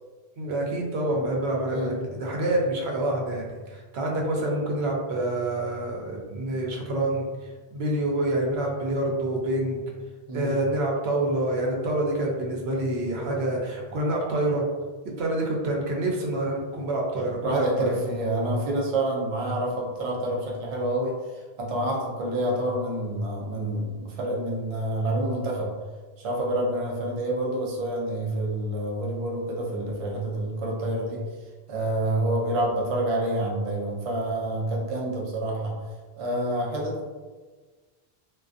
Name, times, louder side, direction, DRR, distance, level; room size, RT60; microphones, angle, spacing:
voice 1, 0.4-7.3 7.7-9.8 10.3-14.6 15.2-18.0, right 1 dB, 80° right, -1 dB, 0.8 m, -27 dB
voice 2, 17.4-25.8 26.2-31.2 31.7-35.8 36.2-37.1, right 1 dB, 45° right, -2 dB, 0.4 m, -28 dB
2.4 x 2.2 x 2.4 m, 1.3 s
omnidirectional pair, 1.1 m